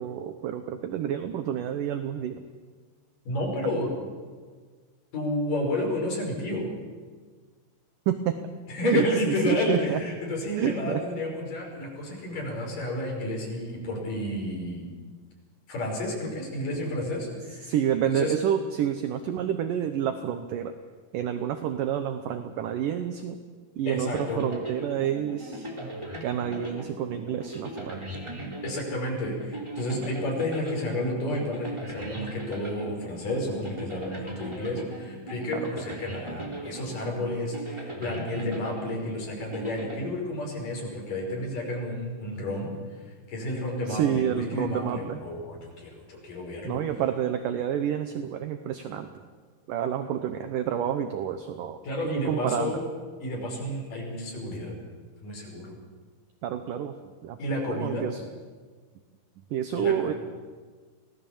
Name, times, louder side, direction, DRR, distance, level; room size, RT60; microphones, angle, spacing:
voice 1, 0.0-2.4 8.1-8.4 8.8-10.0 10.5-11.0 17.6-20.7 21.1-23.4 23.8-25.7 26.2-28.1 35.5-35.6 43.9-45.3 46.6-49.2 49.7-52.8 56.4-57.4 57.7-58.2 59.4-60.1, right 9 dB, 70° right, 8 dB, 2.3 m, -29 dB
voice 2, 3.3-3.9 5.1-6.7 8.7-14.9 15.7-17.7 18.1-18.3 23.9-24.4 28.6-42.7 43.3-46.8 51.8-52.8 53.2-54.7 55.2-55.7 57.4-58.1 59.8-60.2, left 1 dB, 60° left, 0 dB, 6.9 m, -31 dB
sound 1, 24.1-40.7, right 1 dB, 10° right, 2.8 m, -39 dB
25.5 x 18.5 x 7.1 m, 1.5 s
omnidirectional pair, 4.4 m